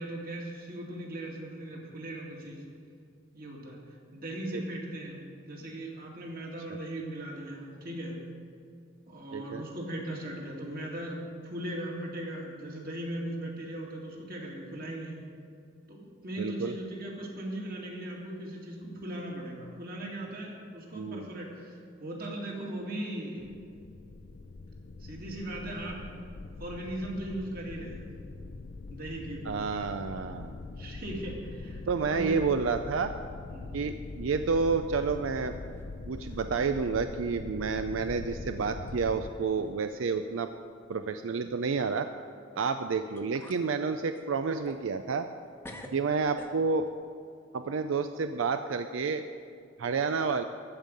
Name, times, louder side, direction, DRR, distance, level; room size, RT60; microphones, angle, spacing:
voice 1, 0.0-2.6 3.3-3.8 4.1-8.2 9.1-15.2 15.9-23.5 25.0-26.0 26.6-28.2 28.9-29.5 30.2-30.3 30.8-32.4 33.5-33.8 45.7-45.9, right 1 dB, 50° right, -2 dB, 2.3 m, -38 dB
voice 2, 9.3-9.6 16.4-16.7 20.9-21.3 29.5-30.6 31.9-33.1 33.7-35.6 36.0-40.5 40.9-42.1 42.6-45.3 45.9-46.9 47.5-49.2 49.8-50.4, right 5 dB, 90° right, 8 dB, 0.5 m, -30 dB
sound 1, 23.4-39.3, left 3 dB, 55° left, 0.5 m, -43 dB
sound 2, 35.1-35.9 36.2-36.6 37.1-37.2 38.0-38.2 38.9-39.0 39.4-39.8 40.1-40.2 42.7-42.8 43.2-43.7 44.1-45.4 45.6-46.9, left 1 dB, 10° left, 0.9 m, -50 dB
13.5 x 5.4 x 9.1 m, 2.3 s
head